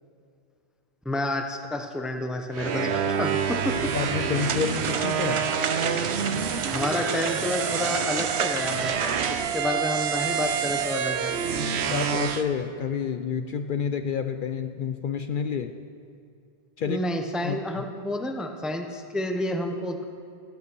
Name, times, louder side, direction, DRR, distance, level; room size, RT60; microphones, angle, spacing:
voice 1, 1.0-3.9 6.7-9.0 9.3-11.3 16.8-20.0, left 1 dB, ahead, 5 dB, 0.6 m, -29 dB
sound 1, 2.5-12.4, right 7 dB, 80° right, 1.0 m, -27 dB
voice 2, 3.9-5.5 11.9-15.7 16.8-17.0 17.4-17.8, left 6 dB, 60° left, 8 dB, 0.6 m, -29 dB
sound 2, 4.3-9.3, right 6 dB, 55° right, 0.3 m, -31 dB
15.0 x 8.5 x 6.1 m, 2.4 s
omnidirectional pair, 1.1 m